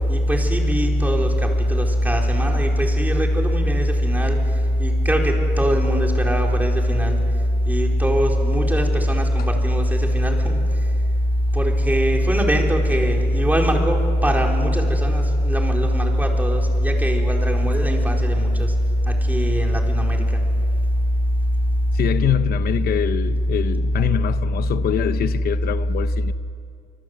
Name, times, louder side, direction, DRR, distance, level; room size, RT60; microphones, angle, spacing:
voice 1, 0.1-4.4 4.8-7.2 7.7-10.6 11.5-18.7 19.3-20.2, equal, 10° right, 4.3 m, -19 dB
voice 2, 21.9-26.3, left 12 dB, 65° left, 0.9 m, -24 dB
25.5 x 25.0 x 8.0 m
cardioid pair, 110°, 17 cm